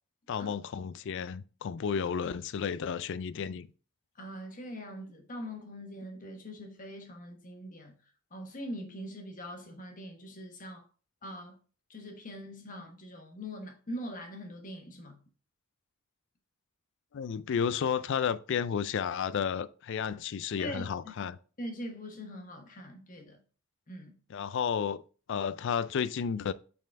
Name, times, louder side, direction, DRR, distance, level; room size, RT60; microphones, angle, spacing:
voice 1, 0.3-3.7 17.1-21.4 24.3-25.0 25.3-26.5, left 7 dB, 60° left, 0.4 m, -32 dB
voice 2, 4.2-8.0 8.3-10.8 11.2-11.6 11.9-15.2 20.6-21.1 21.6-23.4 23.9-24.1, equal, 40° left, 1.3 m, -42 dB
6.5 x 4.2 x 3.5 m
head